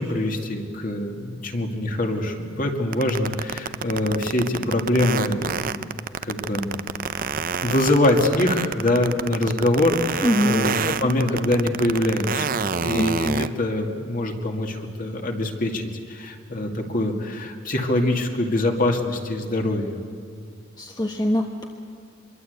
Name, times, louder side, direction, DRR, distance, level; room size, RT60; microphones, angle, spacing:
voice 1, 0.0-5.6 6.2-6.7 7.6-20.0, left 1 dB, 45° left, 3 dB, 2.4 m, -24 dB
sound 1, 2.9-13.5, right 6 dB, 45° right, 0.6 m, -27 dB
voice 2, 10.2-11.3 12.9-13.4 20.8-21.7, equal, 20° left, 2 dB, 1.1 m, -24 dB
25.5 x 22.5 x 8.2 m, 2.1 s
head